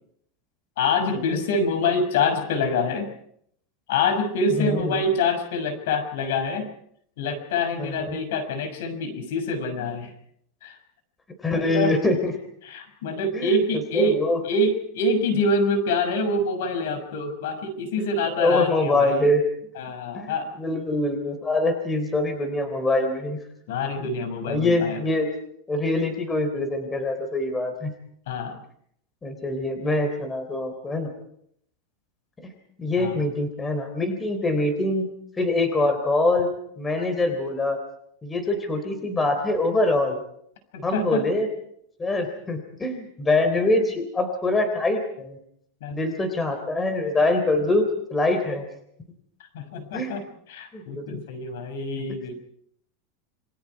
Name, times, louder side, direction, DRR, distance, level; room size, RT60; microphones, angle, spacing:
voice 1, 0.8-3.1 3.9-6.7 7.2-10.1 10.6-10.8 11.5-11.9 12.6-14.2 14.4-19.3 19.7-20.5 23.7-25.0 28.3-28.6 33.0-33.2 37.0-37.1 40.7-41.2 45.8-46.0 49.5-50.2 50.5-52.3, left 2 dB, 75° left, 8 dB, 6.0 m, -26 dB
voice 2, 4.6-5.0 7.8-8.2 11.4-12.3 13.3-13.6 13.9-14.4 18.0-18.1 18.4-19.4 20.1-23.4 24.5-25.3 25.7-27.9 29.2-31.1 32.4-32.5 32.8-35.1 35.4-36.5 36.8-37.8 38.2-40.2 40.8-41.5 42.0-45.4 45.9-48.7 49.9-50.2 50.7-51.2, left 2 dB, 10° left, 7 dB, 3.5 m, -24 dB
27.5 x 24.5 x 4.8 m, 0.69 s
supercardioid pair, 155°, 0 cm